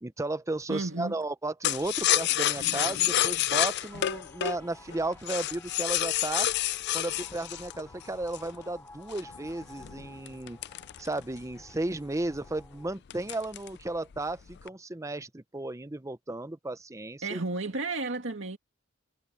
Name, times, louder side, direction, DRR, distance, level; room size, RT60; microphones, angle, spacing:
voice 1, 0.0-6.5 6.9-10.6 11.0-17.4, right 2 dB, 15° right, 0.7 m, -34 dB
voice 2, 0.7-1.1 17.2-18.6, right 3 dB, 65° right, 2.3 m, -32 dB
sound 1, 1.6-8.6 9.1-11.5 11.9-12.0 12.3-12.7 13.1-13.8 14.1-14.7, left 13 dB, 55° left, 0.4 m, -29 dB
sound 2, 2.8-12.9, left 2 dB, 10° left, 6.4 m, -53 dB
head